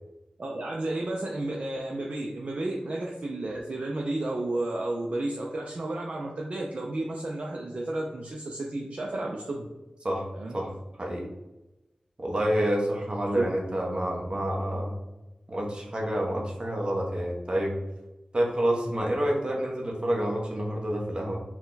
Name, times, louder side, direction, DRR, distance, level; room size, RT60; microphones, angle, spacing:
voice 1, 0.4-9.7 10.3-10.6 13.3-13.4, right 2 dB, 55° right, -2 dB, 0.5 m, -32 dB
voice 2, 12.2-15.0 15.5-17.8 18.3-21.4, right 1 dB, 40° right, -1 dB, 1.0 m, -28 dB
4.3 x 2.2 x 3.9 m, 1.0 s
wide cardioid pair, 85°, 3 cm